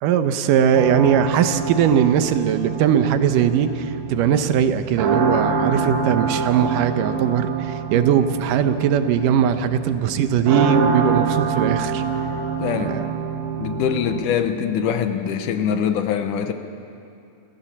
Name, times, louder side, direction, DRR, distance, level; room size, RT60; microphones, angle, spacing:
voice 1, 0.0-12.0 12.8-13.1, right 8 dB, 80° right, 10 dB, 2.4 m, -20 dB
sound 1, 0.8-14.2, right 5 dB, 60° right, 3.0 m, -26 dB
voice 2, 12.6-13.0 13.6-16.5, left 8 dB, 75° left, 8 dB, 2.4 m, -23 dB
29.0 x 14.5 x 7.2 m, 2.6 s
omnidirectional pair, 3.9 m